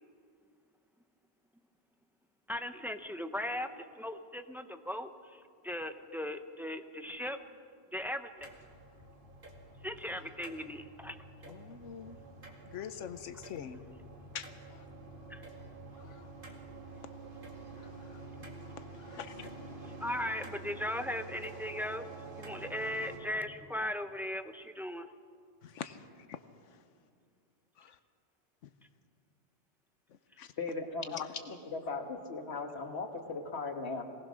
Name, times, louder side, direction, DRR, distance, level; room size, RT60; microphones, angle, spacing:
voice 1, 2.5-7.4 7.9-8.5 9.8-11.2 15.3-15.4 19.8-22.0 22.3-25.1, left 1 dB, ahead, 8 dB, 0.5 m, -38 dB
sound 1, 8.4-23.2, right 3 dB, 45° right, 2.4 m, -48 dB
voice 2, 11.5-12.2 12.7-13.8 14.3-14.5 16.0-16.3 19.1-19.5 25.6-26.0 26.3-26.4 27.8-27.9 30.4-30.5 31.1-31.3, left 9 dB, 85° left, 11 dB, 1.1 m, -42 dB
voice 3, 30.6-34.0, left 3 dB, 60° left, 5 dB, 1.7 m, -38 dB
22.5 x 18.5 x 6.3 m, 2.3 s
omnidirectional pair, 1.2 m